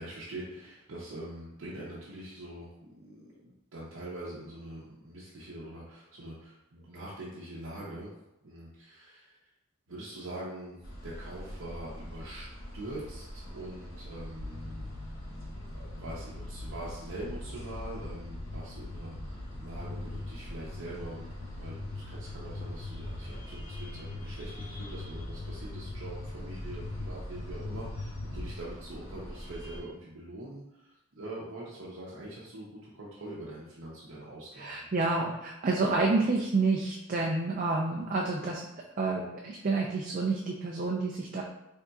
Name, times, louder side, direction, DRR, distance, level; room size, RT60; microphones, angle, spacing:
voice 1, 0.0-8.1 8.4-9.4 9.9-10.8 11.0-12.5 12.7-14.9 15.5-34.9, right 1 dB, 70° right, -7 dB, 0.7 m, -43 dB
sound 1, 10.8-29.8, equal, 85° left, 1.1 m, -44 dB
sound 2, 14.4-28.5, left 2 dB, 65° left, 0.7 m, -42 dB
voice 2, 34.6-38.6 39.0-41.4, right 3 dB, 40° right, -2 dB, 0.4 m, -29 dB
3.9 x 3.5 x 2.3 m, 0.89 s
head